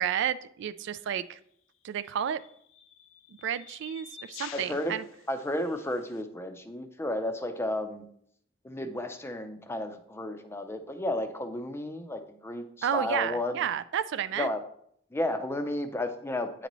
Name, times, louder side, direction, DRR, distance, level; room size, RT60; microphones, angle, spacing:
voice 1, 0.0-1.4 1.8-2.4 3.4-5.0 12.8-14.5, right 9 dB, 65° right, 15 dB, 0.3 m, -31 dB
sound 1, 0.8-1.0 2.0-6.2, left 8 dB, 70° left, 0.5 m, -49 dB
voice 2, 4.5-5.0 5.3-8.0 8.6-13.6 14.4-14.6 15.1-16.7, left 1 dB, 15° left, 8 dB, 0.5 m, -32 dB
9.2 x 4.0 x 3.0 m, 0.68 s
head